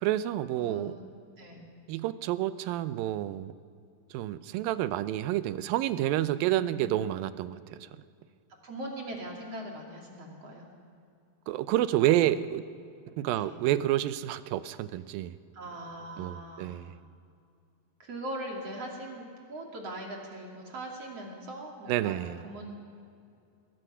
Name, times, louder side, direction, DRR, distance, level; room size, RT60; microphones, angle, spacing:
voice 1, 0.0-1.0 1.9-3.5 4.1-7.6 11.5-12.6 13.2-15.4 16.2-16.9 21.9-22.4, right 13 dB, 90° right, 13 dB, 2.5 m, -29 dB
voice 2, 0.6-1.0 1.4-1.7 6.6-6.9 8.6-10.7 12.0-12.2 13.4-13.6 15.5-16.8 18.0-22.7, right 1 dB, 45° right, -1 dB, 3.5 m, -41 dB
26.5 x 21.0 x 5.7 m, 2.4 s
omnidirectional pair, 4.0 m